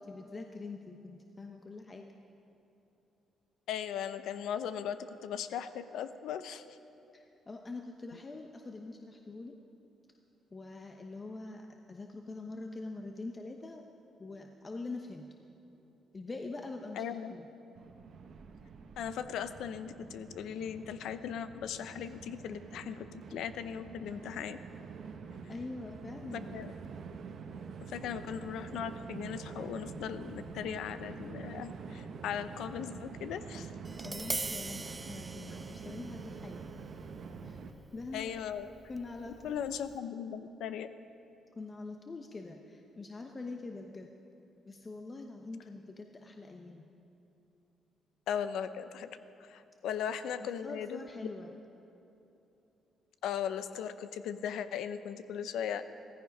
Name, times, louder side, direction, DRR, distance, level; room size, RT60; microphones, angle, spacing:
voice 1, 0.1-2.1 7.1-9.6 10.5-13.8 14.2-15.3 16.1-17.5 25.5-26.5 34.0-36.6 37.4-37.6 37.9-38.4 38.9-39.7 41.5-44.1 44.7-46.9 50.2-51.5, left 3 dB, 30° left, 3 dB, 1.0 m, -44 dB
voice 2, 3.7-6.6 17.0-17.3 19.0-24.6 26.3-26.7 27.8-33.7 38.1-38.7 39.4-40.9 48.3-49.1 49.4-51.0 53.2-55.9, left 8 dB, 80° left, 12 dB, 0.7 m, -38 dB
Train, 17.8-37.7, right 5 dB, 60° right, 1.1 m, -46 dB
Tap, 33.8-40.0, right 2 dB, 20° right, 0.4 m, -43 dB
16.0 x 15.0 x 5.4 m, 3.0 s
cardioid pair, 90°, 0 cm